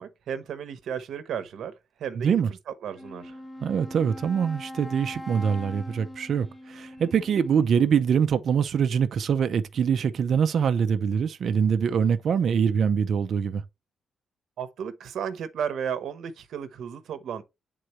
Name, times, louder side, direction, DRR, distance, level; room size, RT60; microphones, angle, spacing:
voice 1, 0.0-1.7 2.0-2.3 2.8-3.3 14.6-17.4, right 8 dB, 65° right, 0.9 m, -33 dB
voice 2, 2.2-2.5 3.6-13.6, right 7 dB, 50° right, 0.5 m, -24 dB
Wind instrument woodwind instrument, 2.9-7.8, left 1 dB, 5° left, 0.6 m, -42 dB
9.2 x 3.8 x 3.1 m
wide cardioid pair, 175°, 0 cm